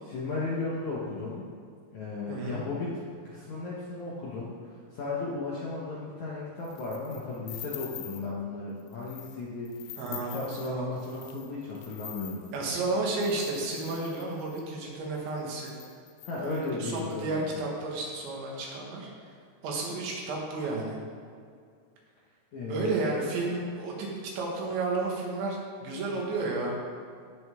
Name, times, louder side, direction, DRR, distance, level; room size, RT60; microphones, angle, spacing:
voice 1, 0.1-1.5 1.9-4.5 4.9-12.4 16.2-17.6 22.5-22.9, left 3 dB, 65° left, -6 dB, 1.8 m, -35 dB
voice 2, 2.3-2.6 10.0-10.9 12.5-15.8 16.4-19.1 19.6-21.0 22.7-24.1 24.4-26.7, right 3 dB, 85° right, -2 dB, 4.1 m, -32 dB
sound 1, 6.6-8.3 8.8-9.4 9.7-14.7 15.3-15.4 15.6-17.1, left 12 dB, 85° left, 2.2 m, -45 dB
16.0 x 6.6 x 3.7 m, 2.2 s
omnidirectional pair, 5.1 m